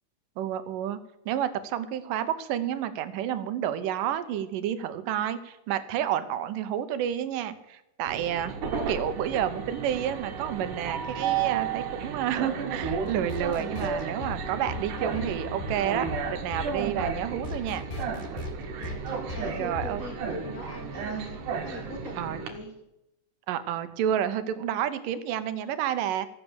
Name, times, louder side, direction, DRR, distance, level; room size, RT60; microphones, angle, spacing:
voice 1, 0.4-1.0 1.3-8.5 8.9-17.8 19.6-20.0 22.2-22.4 23.5-26.3, right 10 dB, 90° right, 12 dB, 2.5 m, -30 dB
Train, 8.1-22.5, right 6 dB, 75° right, 2.9 m, -33 dB
sound 1, 12.8-21.2, left 2 dB, 85° left, 0.4 m, -38 dB
voice 2, 18.3-22.7, equal, 35° left, 2 dB, 1.4 m, -42 dB
14.5 x 8.5 x 7.0 m, 0.87 s
omnidirectional pair, 3.7 m